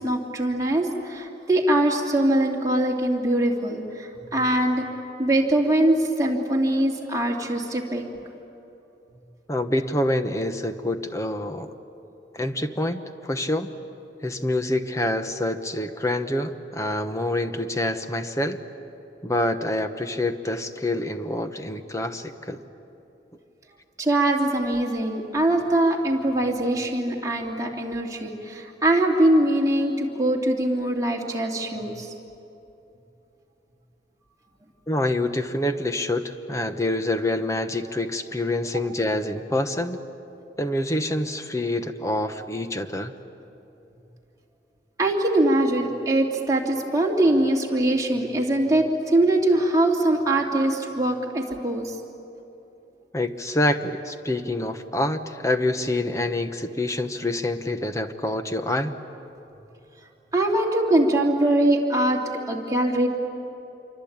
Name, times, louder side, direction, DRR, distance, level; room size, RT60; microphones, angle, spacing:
voice 1, 0.0-4.8 5.2-8.0 24.0-32.1 45.0-51.9 60.3-62.2 62.5-63.1, right 1 dB, 20° right, -1 dB, 2.9 m, -22 dB
voice 2, 9.5-11.7 12.3-13.7 14.2-18.6 19.2-22.6 34.9-40.0 40.6-43.1 53.1-59.0, left 1 dB, 15° left, 7 dB, 1.1 m, -26 dB
27.0 x 24.0 x 8.9 m, 3.0 s
head